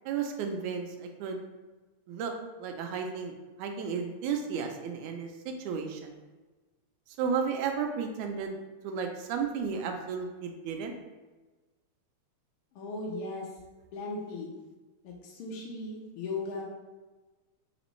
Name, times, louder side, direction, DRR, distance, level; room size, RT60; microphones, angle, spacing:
voice 1, 0.1-1.4 2.1-2.3 2.6-3.3 3.6-6.2 7.2-8.6 8.8-10.9, right 6 dB, 85° right, 4 dB, 2.0 m, -33 dB
voice 2, 12.7-13.5 13.9-14.5 15.0-16.6, left 3 dB, 75° left, -2 dB, 1.3 m, -37 dB
4.3 x 4.1 x 3.0 m, 1.2 s
omnidirectional pair, 3.4 m